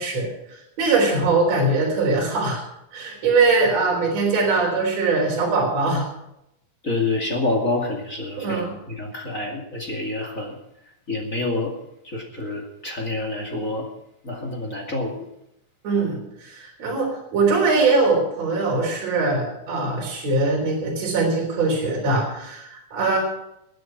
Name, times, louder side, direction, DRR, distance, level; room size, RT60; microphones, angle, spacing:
voice 1, 0.0-2.6 2.9-6.1 8.4-8.8 15.8-23.2, right 3 dB, 50° right, -2 dB, 4.8 m, -22 dB
voice 2, 6.8-10.6 11.1-11.7 12.0-13.9 14.2-15.1, left 2 dB, 25° left, 0 dB, 2.2 m, -27 dB
20.5 x 8.5 x 6.0 m, 0.83 s
omnidirectional pair, 4.0 m